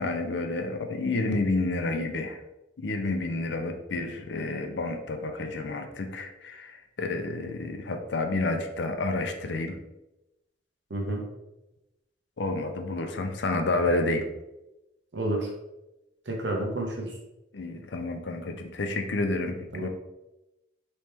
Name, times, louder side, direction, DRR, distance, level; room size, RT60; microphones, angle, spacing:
voice 1, 0.0-2.4 2.8-9.8 12.4-14.2 17.5-19.9, left 2 dB, 65° left, 5 dB, 0.5 m, -30 dB
voice 2, 10.9-11.2 15.1-15.5 16.3-17.2 19.7-19.9, right 1 dB, 70° right, 0 dB, 0.9 m, -30 dB
4.3 x 3.1 x 3.5 m, 0.95 s
head